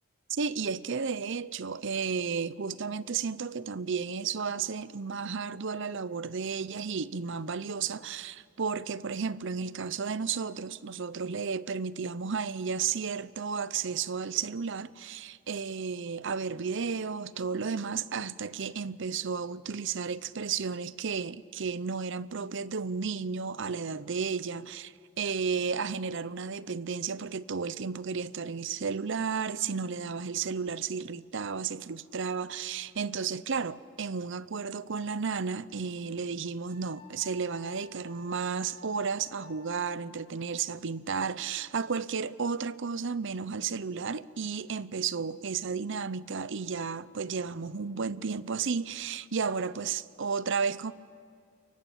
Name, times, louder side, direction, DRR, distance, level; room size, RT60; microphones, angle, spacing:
voice 1, 0.3-50.9, right 5 dB, 60° right, 0.7 m, -33 dB
Wind instrument woodwind instrument, 36.7-40.5, left 3 dB, 45° right, 4.5 m, -54 dB
29.5 x 23.0 x 8.6 m
head